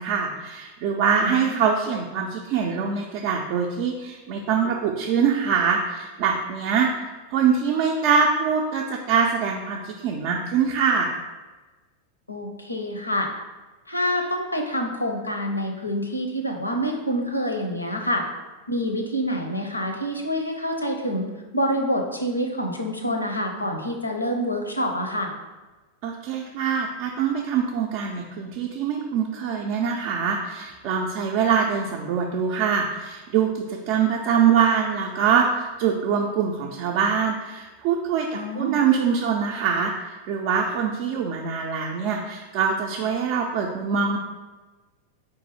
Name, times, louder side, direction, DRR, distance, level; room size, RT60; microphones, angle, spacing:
voice 1, 0.0-11.1 26.0-38.3 38.6-44.2, right 6 dB, 45° right, 0 dB, 0.4 m, -24 dB
voice 2, 1.2-1.6 12.3-13.3 13.9-18.2 18.7-21.3 21.5-25.3 38.3-38.8, equal, 85° left, 3 dB, 0.6 m, -27 dB
4.7 x 2.6 x 4.0 m, 1.2 s
figure-of-eight pair, 90°, 0 cm